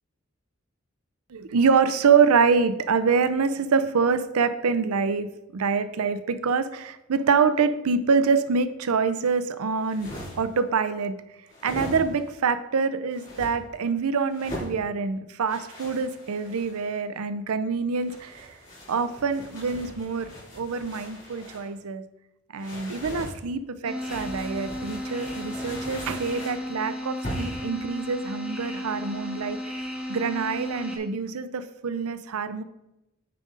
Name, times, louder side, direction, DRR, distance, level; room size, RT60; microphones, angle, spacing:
voice 1, 1.3-11.1 11.6-18.5 18.9-20.3 20.5-22.0 22.5-32.6, right 5 dB, 90° right, 12 dB, 0.5 m, -25 dB
sound 1, 9.7-10.6 11.5-12.4 13.1-13.5 14.3-14.8 15.5-16.9 17.9-21.7 22.6-23.4 24.0-26.6 27.2-27.7, equal, 35° left, 2.9 m, -39 dB
sound 2, 23.8-31.0, left 1 dB, 5° right, 0.9 m, -34 dB
9.1 x 5.0 x 3.8 m, 0.90 s
head